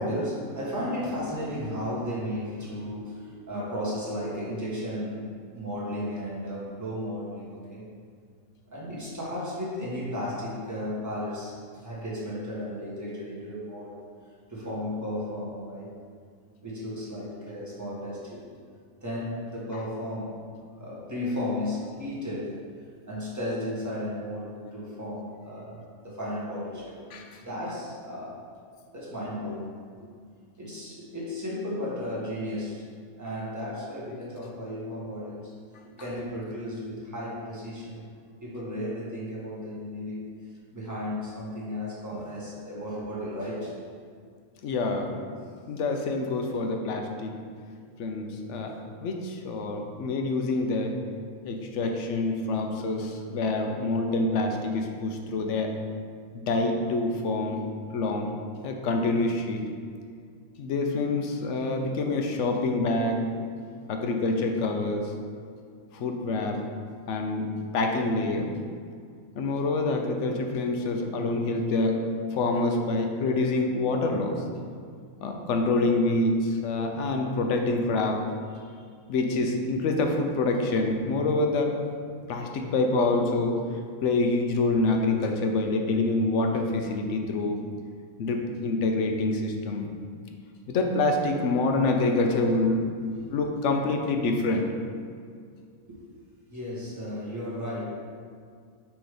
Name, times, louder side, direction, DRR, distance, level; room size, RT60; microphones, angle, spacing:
voice 1, 0.0-7.9 8.7-13.9 14.5-15.9 16.6-18.5 19.0-20.3 20.8-22.6 23.1-28.4 28.9-29.7 30.6-32.8 33.2-35.5 36.0-38.0 38.4-40.3 40.7-44.0 63.8-63.9 78.6-78.8 93.1-93.2 95.8-96.0 96.5-97.8, left 1 dB, 15° right, -7 dB, 1.3 m, -34 dB
voice 2, 27.1-27.4 44.6-45.1 45.7-47.3 48.0-48.8 49.0-51.0 51.4-55.7 56.3-57.7 57.9-58.3 58.6-59.7 60.6-63.2 63.9-65.1 65.9-66.6 67.1-68.5 69.4-72.1 72.3-74.4 75.2-78.2 79.1-81.8 82.3-83.6 84.0-87.6 88.2-89.9 90.7-92.8 93.3-94.7, left 2 dB, 65° left, 3 dB, 0.9 m, -26 dB
6.1 x 3.1 x 4.9 m, 2.1 s
omnidirectional pair, 1.5 m